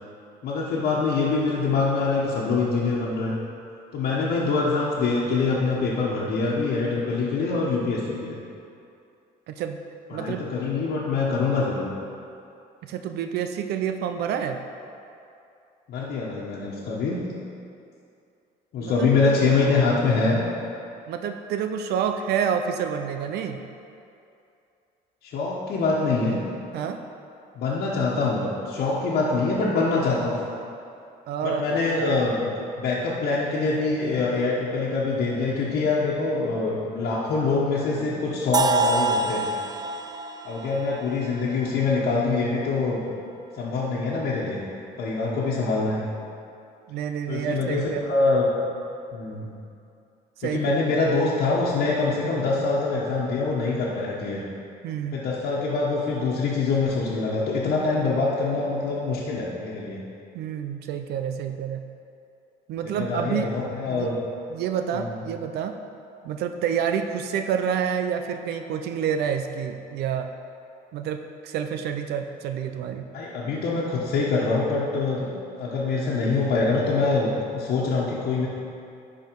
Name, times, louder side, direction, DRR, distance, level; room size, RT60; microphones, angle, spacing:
voice 1, 0.4-3.3 3.9-8.4 10.1-11.9 15.9-17.2 18.7-20.4 25.2-26.4 27.5-30.3 31.4-32.5 32.8-39.5 40.4-43.0 43.5-44.6 45.0-46.0 47.3-48.5 49.1-49.5 50.5-54.4 55.1-60.0 62.8-64.2 64.9-65.2 73.1-75.3 75.6-78.5, left 3 dB, 65° left, -7 dB, 1.3 m, -24 dB
voice 2, 9.5-9.8 10.1-10.4 12.8-14.6 18.8-19.4 21.1-23.6 26.7-27.0 31.3-31.8 46.9-48.0 50.4-50.8 54.8-55.2 60.3-61.9 62.7-63.5 63.9-64.1 64.5-65.8 66.2-70.3 70.9-73.1, right 8 dB, 75° right, 6 dB, 0.5 m, -28 dB
sound 1, 38.5-42.4, right 3 dB, 25° right, 0.4 m, -27 dB
10.5 x 4.8 x 4.7 m, 2.6 s
cardioid pair, 110°, 17 cm